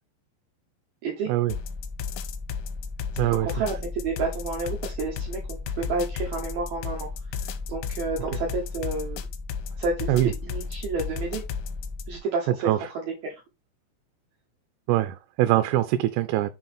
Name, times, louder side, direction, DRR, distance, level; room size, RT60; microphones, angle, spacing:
voice 1, 1.3-1.6 3.2-3.7 10.1-10.3 12.5-12.8 14.9-16.5, right 14 dB, 85° right, 3.1 m, -23 dB
sound 1, 1.5-12.2, left 5 dB, 85° left, 3.2 m, -33 dB
voice 2, 3.4-9.2 9.8-10.1 10.4-11.4 12.1-13.4, right 3 dB, 70° right, 2.4 m, -30 dB
6.8 x 4.0 x 4.3 m
omnidirectional pair, 5.8 m